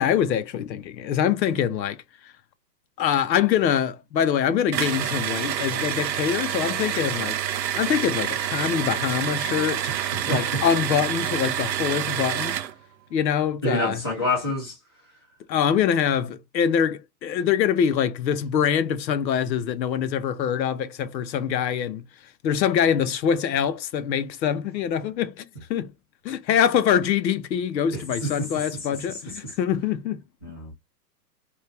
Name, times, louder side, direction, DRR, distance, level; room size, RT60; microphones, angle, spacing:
voice 1, 0.0-2.0 3.0-7.4 7.8-9.8 10.3-12.6 13.1-14.0 15.5-22.0 22.4-25.4 25.7-25.9 26.2-30.2, left 8 dB, 90° left, 0.8 m, -24 dB
sound 1, 4.7-12.7, right 10 dB, 85° right, 0.7 m, -27 dB
voice 2, 9.9-10.6 13.6-14.8 27.9-28.5 29.1-29.3 30.4-30.7, left 1 dB, 15° left, 0.5 m, -28 dB
3.1 x 2.3 x 3.2 m
hypercardioid pair, 175°, 50 cm